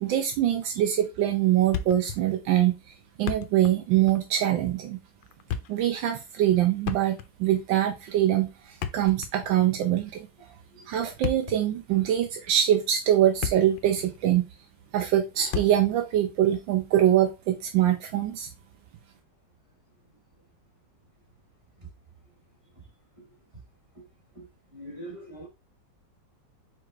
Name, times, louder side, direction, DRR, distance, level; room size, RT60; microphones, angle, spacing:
voice 1, 0.0-2.7 3.2-5.0 5.7-10.3 10.9-14.4 14.9-18.5, right 11 dB, 85° right, 1.4 m, -24 dB
Thump thud, 1.7-2.3 2.5-2.6 3.1-3.8 4.1-4.3 5.2-5.9 6.8-7.5 8.6-9.6 11.0-11.7 12.4-12.5 13.1-13.9 14.1-14.3 15.5-16.0, left 8 dB, 90° left, 1.3 m, -33 dB
voice 2, 24.7-25.5, right 1 dB, 20° right, 1.2 m, -41 dB
4.8 x 4.5 x 2.4 m
omnidirectional pair, 2.0 m